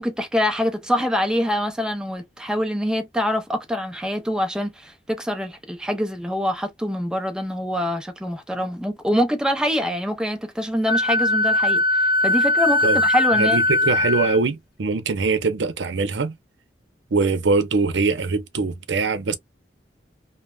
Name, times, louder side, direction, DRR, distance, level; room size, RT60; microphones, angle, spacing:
voice 1, 0.0-11.8 12.2-13.6, equal, 5° right, 0.5 m, -24 dB
Wind instrument woodwind instrument, 10.9-14.4, left 2 dB, 55° left, 0.6 m, -20 dB
voice 2, 13.3-16.3 17.1-19.3, right 4 dB, 80° right, 0.6 m, -22 dB
3.2 x 2.0 x 2.3 m
head